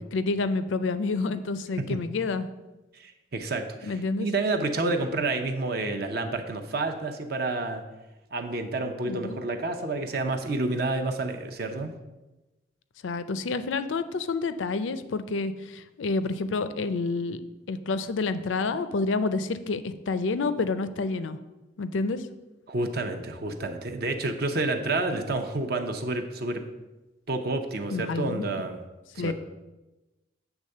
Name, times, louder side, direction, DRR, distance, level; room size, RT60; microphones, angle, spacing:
voice 1, 0.1-2.5 3.9-4.3 9.0-9.4 13.0-17.4 17.7-21.4 21.8-22.2 27.9-28.4 29.2-29.3, left 3 dB, 80° left, 12 dB, 0.5 m, -28 dB
voice 2, 2.9-7.8 8.3-11.9 22.7-26.6 27.3-28.8 29.1-29.3, right 2 dB, 50° right, 5 dB, 0.6 m, -29 dB
8.1 x 3.5 x 6.5 m, 1.1 s
head